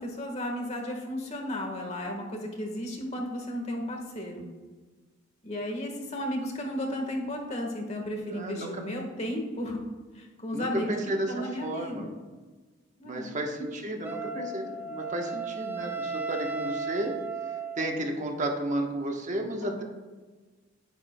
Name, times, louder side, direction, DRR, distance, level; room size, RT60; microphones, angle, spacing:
voice 1, 0.0-4.4 5.4-9.8 10.1-10.9 11.3-12.1 13.0-13.3 19.6-19.8, left 1 dB, 35° left, 2 dB, 1.4 m, -34 dB
voice 2, 8.3-8.8 10.5-12.1 13.0-17.2 17.8-19.8, right 1 dB, 40° right, 2 dB, 1.0 m, -32 dB
Wind instrument woodwind instrument, 14.0-18.0, right 4 dB, 10° right, 0.7 m, -35 dB
9.6 x 9.4 x 2.2 m, 1.3 s
head